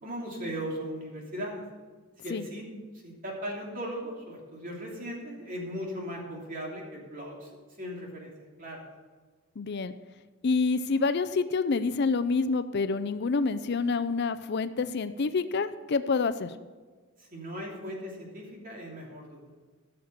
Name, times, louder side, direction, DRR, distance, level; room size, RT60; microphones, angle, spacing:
voice 1, 0.0-1.6 2.2-2.6 2.9-7.5 7.8-8.3 8.6-8.8 17.2-19.4, equal, 40° right, -2 dB, 3.0 m, -38 dB
voice 2, 9.6-9.9 10.4-16.5, left 4 dB, 55° left, 12 dB, 0.5 m, -27 dB
14.0 x 6.5 x 6.7 m, 1.4 s
head